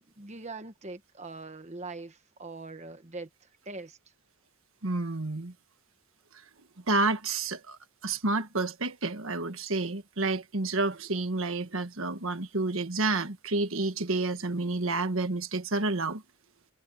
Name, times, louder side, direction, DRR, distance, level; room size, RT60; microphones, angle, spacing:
voice 1, 0.0-4.0, right 3 dB, 30° right, 1.2 m, -42 dB
voice 2, 4.8-5.5 6.9-7.8 8.0-16.2, right 3 dB, 65° right, 1.5 m, -29 dB
head